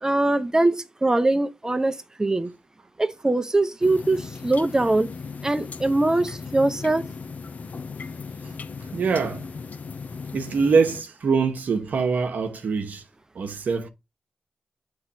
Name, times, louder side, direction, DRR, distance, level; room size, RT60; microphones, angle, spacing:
voice 1, 0.0-2.5 3.0-5.1 5.4-7.1, right 2 dB, 20° right, 0.7 m, -22 dB
sound 1, 3.8-11.0, left 5 dB, 65° left, 0.5 m, -37 dB
voice 2, 8.9-9.4 10.3-13.0 13.3-13.9, right 5 dB, 80° right, 0.9 m, -23 dB
8.6 x 3.1 x 4.0 m
cardioid pair, 45°, 3 cm